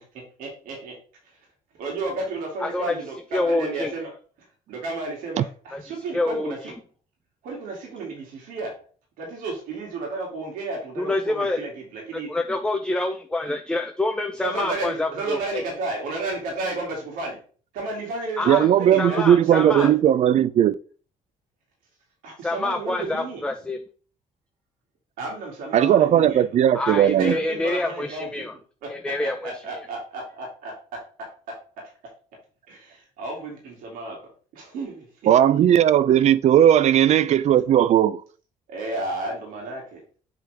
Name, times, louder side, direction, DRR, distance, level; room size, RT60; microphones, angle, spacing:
voice 1, 0.1-0.9 1.2-1.5 1.8-4.1 4.7-6.7 7.4-8.7 9.2-12.3 14.4-17.4 17.7-19.9 22.2-23.4 25.2-26.4 27.2-28.4 28.8-30.7 32.7-34.2 34.5-35.3 36.7-36.9 38.7-40.0, right 2 dB, 90° right, 2.6 m, -32 dB
voice 2, 2.6-2.9 3.3-3.9 5.7-5.8 6.1-6.7 11.0-11.6 12.3-15.6 18.4-18.7 19.0-19.9 22.4-23.8 26.7-28.5 28.9-29.5, left 2 dB, 5° left, 0.6 m, -26 dB
voice 3, 18.5-20.7 25.7-27.3 35.3-38.2, right 10 dB, 50° right, 0.4 m, -17 dB
7.6 x 3.9 x 3.4 m
cardioid pair, 110°, 14 cm